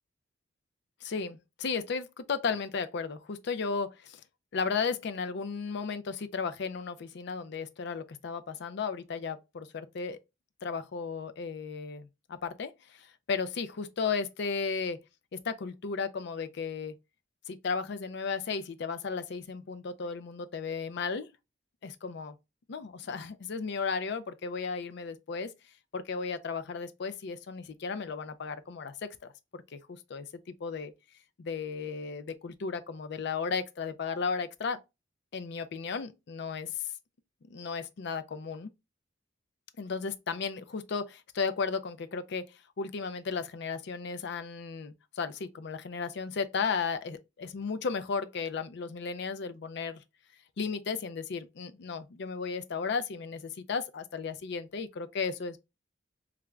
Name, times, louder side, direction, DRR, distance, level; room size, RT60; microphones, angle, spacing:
voice 1, 1.1-4.2 4.5-10.2 10.6-15.0 15.4-16.9 17.5-21.3 21.8-22.3 22.7-25.5 25.9-28.9 29.5-30.9 31.4-34.8 35.3-36.7 37.5-38.7 39.8-42.4 42.8-50.0 50.6-55.6, left 5 dB, 65° left, 0.5 m, -34 dB
3.3 x 2.4 x 3.2 m
head